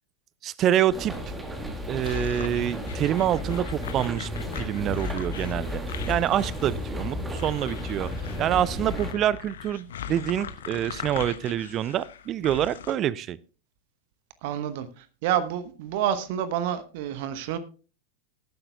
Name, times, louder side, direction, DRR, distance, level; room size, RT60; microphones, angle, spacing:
voice 1, 0.4-1.1 1.9-4.3 4.6-8.1 8.4-13.4, right 11 dB, 30° right, 21 dB, 0.4 m, -26 dB
sound 1, 0.9-9.1, left 1 dB, 10° right, 2.1 m, -33 dB
sound 2, 2.0-12.9, left 8 dB, 60° left, 1.1 m, -40 dB
voice 2, 14.4-17.6, right 10 dB, 50° right, 12 dB, 1.0 m, -28 dB
18.5 x 9.9 x 2.3 m, 0.36 s
figure-of-eight pair, 90°, 0 cm